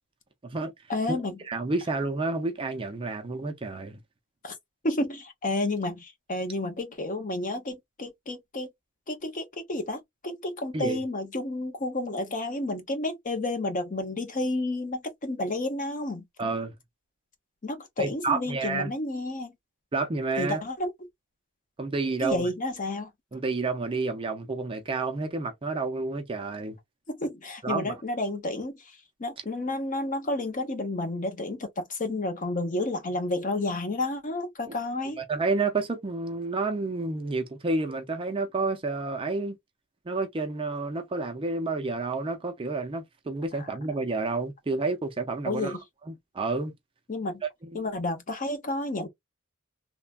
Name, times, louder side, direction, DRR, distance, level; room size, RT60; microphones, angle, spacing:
voice 1, 0.9-1.4 4.4-4.5 4.8-8.7 9.1-16.2 17.6-19.5 20.4-20.9 22.2-23.1 27.1-28.8 29.2-35.2 45.5-45.8 47.1-47.4 47.7-49.1, left 2 dB, 35° left, 0.7 m, -31 dB
voice 2, 1.4-4.0 10.7-11.0 16.4-16.7 18.0-18.9 19.9-20.6 21.8-22.5 23.3-26.8 27.6-27.9 34.7-34.8 35.2-39.6 40.1-45.8 46.1-46.7 47.4-47.9, right 3 dB, 25° right, 0.4 m, -30 dB
3.1 x 2.1 x 2.3 m
head